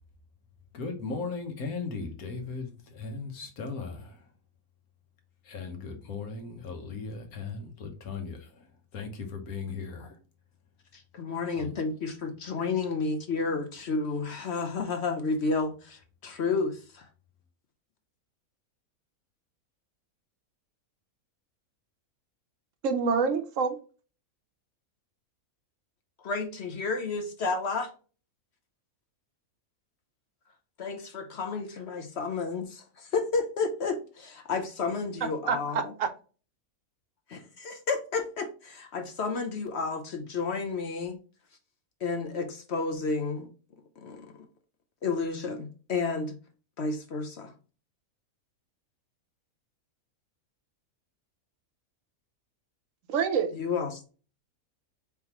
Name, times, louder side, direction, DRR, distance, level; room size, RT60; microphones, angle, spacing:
voice 1, 0.7-4.3 5.4-10.2 11.6-11.7, left 4 dB, 80° left, 1.5 m, -37 dB
voice 2, 10.9-16.7 26.2-27.9 30.8-35.9 37.3-41.2 42.0-43.5 44.0-44.3 45.0-46.4 46.8-47.5 53.5-54.0, left 4 dB, 55° left, 0.9 m, -31 dB
voice 3, 22.8-23.8 35.5-36.1 53.1-53.5, right 5 dB, 70° right, 0.9 m, -26 dB
4.5 x 3.7 x 2.9 m
omnidirectional pair, 1.5 m